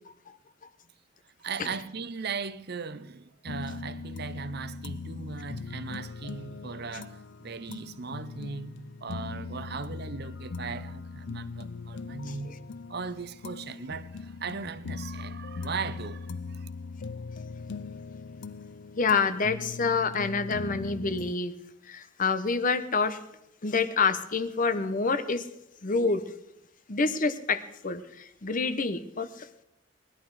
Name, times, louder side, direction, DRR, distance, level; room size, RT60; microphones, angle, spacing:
voice 1, 1.2-16.7, right 5 dB, 55° right, 0.8 m, -38 dB
sound 1, 3.5-21.3, left 4 dB, 60° left, 0.5 m, -40 dB
voice 2, 19.0-21.5 21.8-23.2 23.6-25.5 25.8-26.3 26.9-29.5, left 4 dB, 40° left, 0.9 m, -27 dB
19.5 x 11.5 x 4.8 m
head